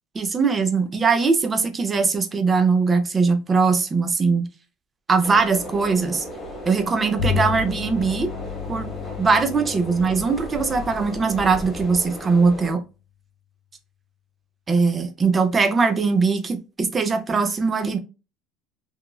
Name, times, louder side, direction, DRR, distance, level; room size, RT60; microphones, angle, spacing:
voice 1, 0.1-4.5 5.1-6.2 6.7-8.3 8.7-8.9 9.2-12.8 14.7-18.0, right 4 dB, 15° right, 0.3 m, -21 dB
sound 1, 5.2-12.7, left 1 dB, 10° left, 0.7 m, -36 dB
Bowed string instrument, 7.2-12.8, left 7 dB, 55° left, 0.6 m, -32 dB
2.9 x 2.3 x 2.2 m
cardioid pair, 175°, 0 cm